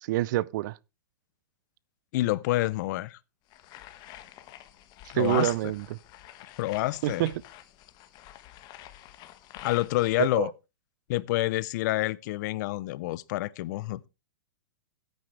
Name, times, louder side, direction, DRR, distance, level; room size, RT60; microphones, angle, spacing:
voice 1, 0.0-0.8 5.1-6.0 7.0-7.3 10.2-10.5, right 15 dB, 55° right, 0.5 m, -27 dB
voice 2, 2.1-3.2 5.1-5.5 6.5-7.3 9.6-10.5 11.1-14.1, left 17 dB, 50° left, 0.6 m, -28 dB
sound 1, 3.5-10.2, left 13 dB, 35° left, 1.3 m, -48 dB
14.0 x 9.1 x 3.3 m
hypercardioid pair, 130°, 12 cm